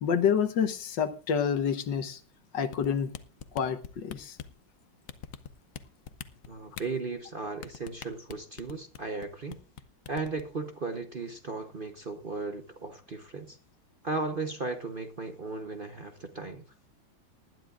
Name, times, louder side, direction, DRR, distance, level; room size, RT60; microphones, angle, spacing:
voice 1, 0.0-2.2 2.5-3.1 3.5-4.4, left 7 dB, 70° left, 1.7 m, -28 dB
sound 1, 2.7-4.6 5.1-5.8 6.1-6.8 7.6-9.3 9.5-9.8 10.1-10.4, left 9 dB, 55° left, 1.0 m, -41 dB
voice 2, 6.5-9.6 10.1-13.6 14.0-16.6, right 3 dB, 40° right, 0.9 m, -36 dB
19.5 x 12.0 x 2.5 m
omnidirectional pair, 2.0 m